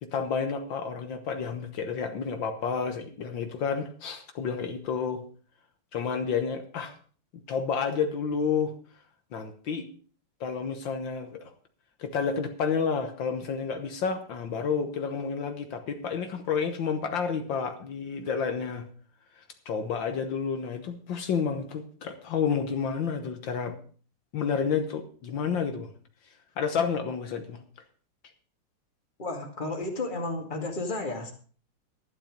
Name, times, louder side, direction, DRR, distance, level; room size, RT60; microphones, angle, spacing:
voice 1, 0.0-5.2 5.9-6.9 7.5-8.7 9.3-9.9 10.4-11.5 12.0-18.9 19.4-23.8 24.3-25.9 26.6-27.6, left 6 dB, 75° left, 6 dB, 1.9 m, -30 dB
voice 2, 29.2-31.3, left 2 dB, 25° left, 3 dB, 2.2 m, -32 dB
12.0 x 11.0 x 5.1 m, 0.43 s
omnidirectional pair, 2.1 m